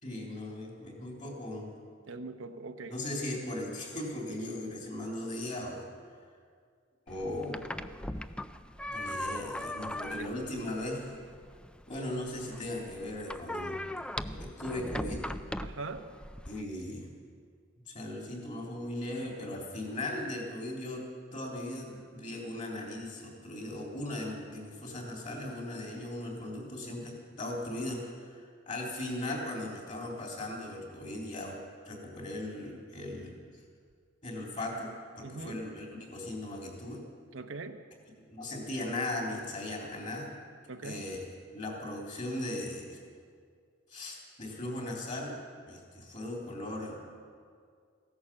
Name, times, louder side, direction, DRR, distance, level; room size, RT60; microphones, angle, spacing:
voice 1, 0.0-1.7 2.9-5.8 7.1-7.7 8.9-11.1 11.9-14.0 14.3-15.2 16.5-17.1 17.9-33.4 34.2-37.0 38.3-40.3 40.8-41.2 41.5-43.0 43.9-47.0, left 1 dB, 40° left, -1 dB, 3.4 m, -38 dB
voice 2, 2.1-3.0 10.2-10.3 15.6-16.1 35.2-35.7 37.3-37.8 40.7-41.1, right 3 dB, 75° right, 7 dB, 0.9 m, -41 dB
sound 1, 7.1-16.6, left 1 dB, 5° left, 0.3 m, -40 dB
15.5 x 11.0 x 7.5 m, 2.1 s
head